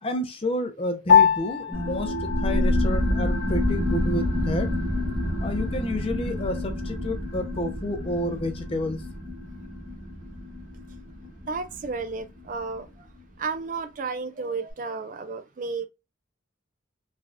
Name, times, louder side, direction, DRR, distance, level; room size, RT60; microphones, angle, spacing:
voice 1, 0.0-4.7 5.4-9.0, left 1 dB, 30° left, 0.5 m, -30 dB
Piano, 1.1-10.7, left 7 dB, 85° left, 0.6 m, -28 dB
sound 1, 1.7-12.8, left 1 dB, 20° right, 1.0 m, -28 dB
voice 2, 11.5-12.9 13.4-15.9, right 4 dB, 45° right, 0.3 m, -32 dB
3.2 x 2.3 x 2.5 m
head